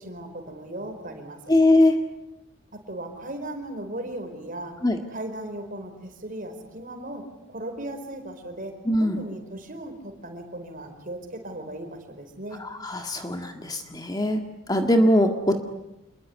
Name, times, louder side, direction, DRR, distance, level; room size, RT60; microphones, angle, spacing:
voice 1, 0.0-1.4 2.7-4.7 5.1-8.7 9.0-12.6, right 1 dB, 40° right, 6 dB, 4.6 m, -37 dB
voice 2, 1.5-1.9 4.8-5.0 8.9-9.2 12.6-14.4 14.7-15.6, left 1 dB, 20° left, 5 dB, 1.9 m, -21 dB
28.0 x 22.0 x 9.7 m, 0.88 s
head